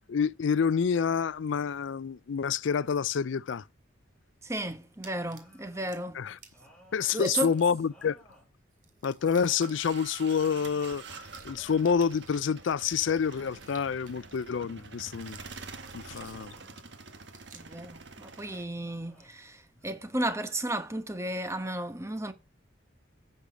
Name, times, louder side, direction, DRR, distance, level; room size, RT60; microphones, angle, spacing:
voice 1, 0.1-3.6 6.1-6.4 6.9-8.2 9.0-15.4 15.9-16.5, left 6 dB, 70° left, 0.4 m, -28 dB
voice 2, 4.4-6.2 7.1-7.5 17.5-22.3, right 1 dB, 15° right, 1.0 m, -33 dB
sound 1, 5.0-6.0 6.4-6.7 7.1-8.0 8.3-8.4 8.7-12.8 13.2-14.5 14.8-16.7 17.2-17.8, right 6 dB, 40° right, 2.1 m, -55 dB
sound 2, 5.2-6.0 6.5-8.5 8.9-9.8 10.4-11.1 11.4-12.1 12.9-13.7 14.6-15.5 16.2-16.9 17.6-18.2 18.7-19.3 19.7-20.8, equal, 5° left, 4.3 m, -60 dB
sound 3, 9.5-18.6, right 4 dB, 60° right, 1.5 m, -47 dB
10.5 x 6.7 x 5.1 m
head